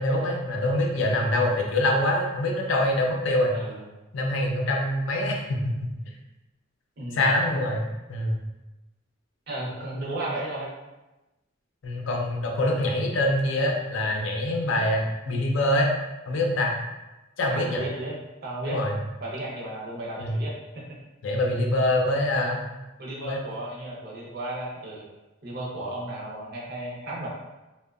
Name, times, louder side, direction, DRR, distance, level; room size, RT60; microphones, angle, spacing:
voice 1, 0.0-3.6 4.1-5.9 7.1-8.4 11.8-15.9 16.3-16.8 17.4-17.8 18.7-19.0 20.2-20.4 21.2-22.6 23.3-23.4, left 1 dB, 70° left, 0 dB, 0.5 m, -25 dB
voice 2, 7.0-7.3 9.5-10.7 17.5-18.2 18.4-18.8 19.2-20.8 23.0-25.0 25.4-27.3, right 1 dB, 50° right, -4 dB, 0.6 m, -34 dB
2.6 x 2.1 x 2.3 m, 1.0 s
head